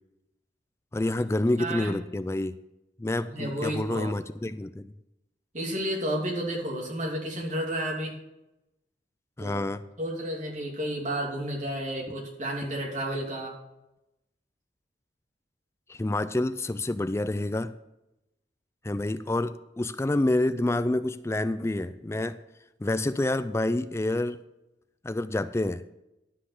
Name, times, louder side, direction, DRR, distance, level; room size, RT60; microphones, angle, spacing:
voice 1, 0.9-2.5 3.0-4.9 9.4-9.8 15.9-17.7 18.8-22.4 22.8-24.4 25.0-25.8, left 2 dB, 15° left, 13 dB, 0.3 m, -28 dB
voice 2, 1.6-2.0 3.3-4.1 5.5-8.1 9.4-9.6 10.0-13.5, right 1 dB, 40° right, -2 dB, 2.9 m, -31 dB
12.0 x 5.7 x 6.5 m, 0.92 s
head